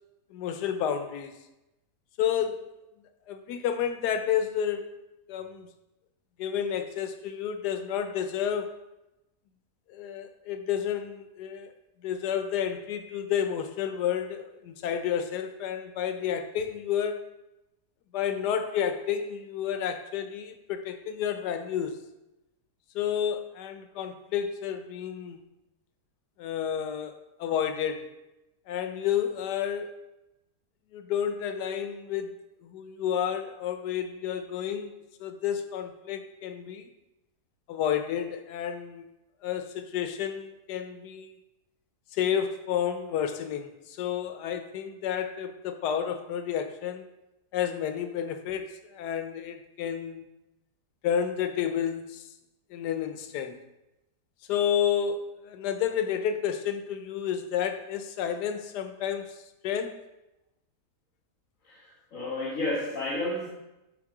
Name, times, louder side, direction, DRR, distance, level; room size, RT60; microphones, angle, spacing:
voice 1, 0.3-1.4 2.2-2.6 3.3-4.9 5.3-5.7 6.4-8.8 9.9-11.7 12.0-17.2 18.1-22.0 22.9-25.4 26.4-28.2 28.7-29.9 30.9-34.9 35.2-36.9 37.7-39.1 39.4-41.3 42.1-47.1 47.5-50.2 51.0-52.3 52.7-53.6 54.5-60.0, left 9 dB, 90° left, 8 dB, 1.2 m, -30 dB
voice 2, 61.6-63.5, left 2 dB, 55° left, -6 dB, 1.7 m, -31 dB
7.3 x 4.6 x 4.8 m, 0.94 s
omnidirectional pair, 1.7 m